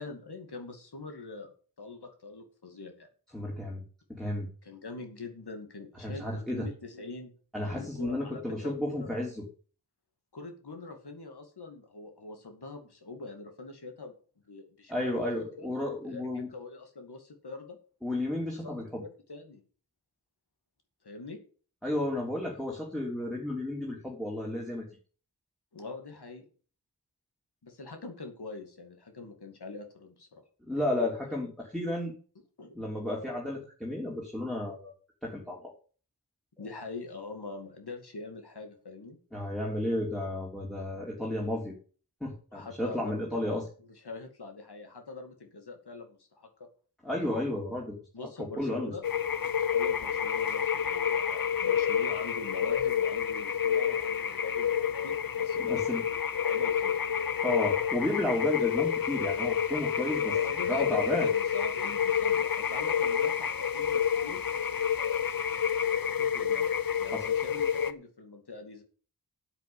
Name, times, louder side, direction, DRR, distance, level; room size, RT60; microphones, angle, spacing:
voice 1, 0.0-1.5 1.8-3.1 4.6-7.3 7.7-9.1 10.3-14.1 14.5-15.7 16.0-17.8 18.6-18.7 19.0-19.6 21.0-21.4 25.7-26.5 27.6-30.4 32.6-33.0 36.6-39.2 42.5-43.3 43.8-46.5 48.1-49.0 49.7-54.8 55.0-56.0 56.4-57.0 60.2-64.4 66.0-66.7 67.0-68.8, left 3 dB, 85° left, 4 dB, 2.5 m, -43 dB
voice 2, 3.3-3.8 4.1-4.5 6.0-6.7 7.5-9.5 14.9-16.5 18.0-19.0 21.8-24.8 30.7-32.1 32.7-34.9 35.2-35.7 39.3-41.7 42.2-43.7 47.0-48.0 48.6-48.9 55.6-56.0 57.4-60.4 60.7-61.3 67.1-67.3, left 1 dB, ahead, -3 dB, 3.5 m, -32 dB
sound 1, 49.0-67.9, left 8 dB, 60° left, 0.9 m, -29 dB
8.2 x 8.1 x 8.9 m, 0.40 s
wide cardioid pair, 55°, 38 cm